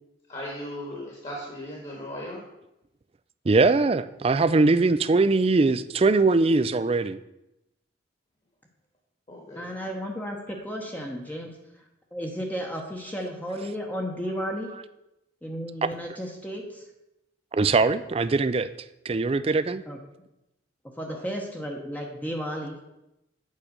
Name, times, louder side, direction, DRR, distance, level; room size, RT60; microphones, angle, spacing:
voice 1, 0.3-2.4 9.3-9.7 21.1-21.2, equal, 30° left, 1.7 m, -37 dB
voice 2, 3.5-7.2 17.5-18.7 19.1-19.8, right 3 dB, 30° right, 0.3 m, -21 dB
voice 3, 9.6-11.6 12.1-14.7 15.4-16.8 19.9-20.0 21.0-22.8, equal, 10° left, 0.9 m, -33 dB
8.5 x 5.0 x 6.6 m
head